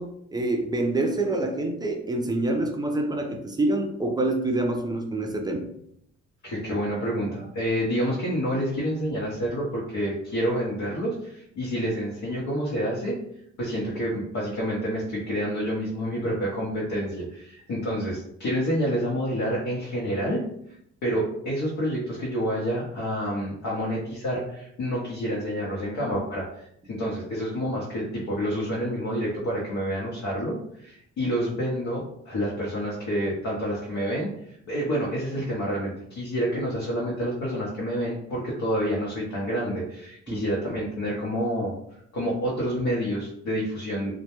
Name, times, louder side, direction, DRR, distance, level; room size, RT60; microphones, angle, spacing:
voice 1, 0.0-5.7 40.3-40.4, right 2 dB, 15° right, 3 dB, 0.4 m, -26 dB
voice 2, 6.4-13.2 13.6-20.4 21.0-41.7 42.1-44.1, equal, 65° left, -6 dB, 0.8 m, -28 dB
2.1 x 2.1 x 2.9 m, 0.72 s
cardioid pair, 90°, 30 cm